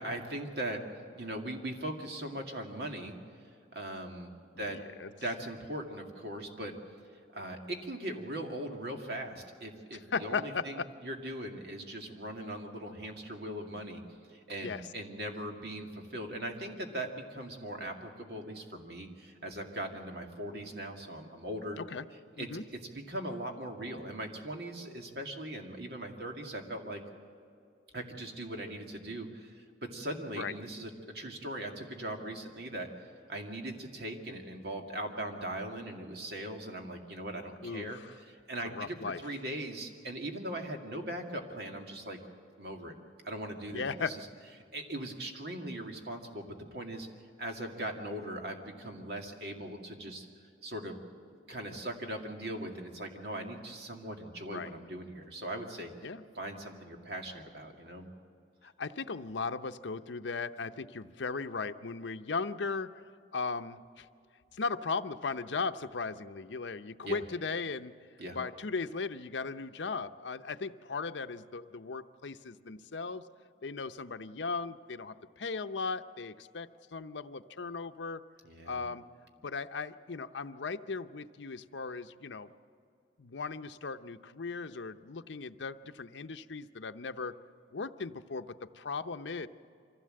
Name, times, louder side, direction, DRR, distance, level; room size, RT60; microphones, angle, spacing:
voice 1, 0.0-3.1 3.7-4.3 4.6-4.8 5.2-6.7 7.3-14.0 14.3-21.8 22.4-27.0 27.9-32.9 33.3-42.2 42.6-43.0 43.2-44.3 44.7-47.1 47.4-50.3 50.6-51.0 51.5-55.9 56.3-58.1 67.0-67.2 68.2-68.4 78.4-78.8, right 1 dB, 60° right, 3 dB, 2.2 m, -40 dB
voice 2, 4.5-5.1 9.9-10.9 14.6-14.8 21.8-22.0 22.4-22.6 30.4-30.5 37.6-38.1 38.6-39.2 43.7-44.1 54.4-54.7 56.0-56.2 58.6-62.9 63.3-64.1 64.5-68.0 68.3-73.2 73.6-78.2 78.7-79.1 79.4-82.5 83.2-87.3 87.7-88.4 88.7-89.5, left 4 dB, 85° left, 9 dB, 0.7 m, -37 dB
24.5 x 16.0 x 7.7 m, 2.5 s
head